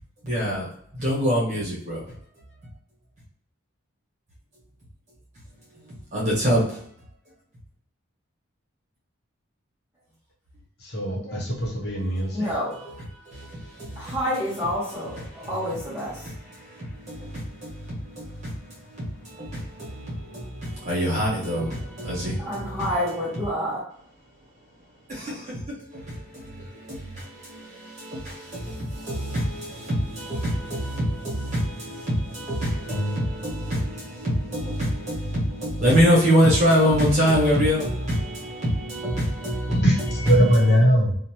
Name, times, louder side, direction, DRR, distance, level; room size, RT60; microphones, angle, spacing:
voice 1, 0.2-0.7 0.9-2.0 6.1-6.8 12.3-12.5 13.3-14.1 15.3-15.5 16.2-22.8 25.1-39.8, equal, 35° right, -5 dB, 1.1 m, -25 dB
voice 2, 10.8-12.5 39.7-41.1, equal, 50° left, -3 dB, 0.8 m, -21 dB
voice 3, 12.3-12.8 14.0-16.3 22.0-22.1 22.4-23.8, equal, 10° right, -8 dB, 0.6 m, -28 dB
2.7 x 2.1 x 2.9 m, 0.66 s
head